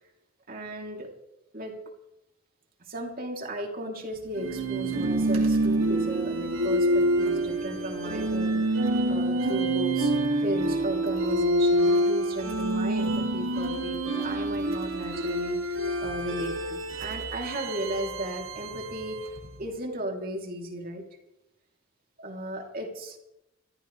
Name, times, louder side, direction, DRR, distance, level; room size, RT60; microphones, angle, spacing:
voice 1, 0.5-1.1 1.5-1.8 2.9-10.1 10.4-19.3 19.6-21.0 22.2-23.2, right 1 dB, 45° right, 1 dB, 3.4 m, -35 dB
sound 1, 4.4-19.5, right 1 dB, 85° right, 2.7 m, -27 dB
27.5 x 13.5 x 3.4 m, 0.87 s
head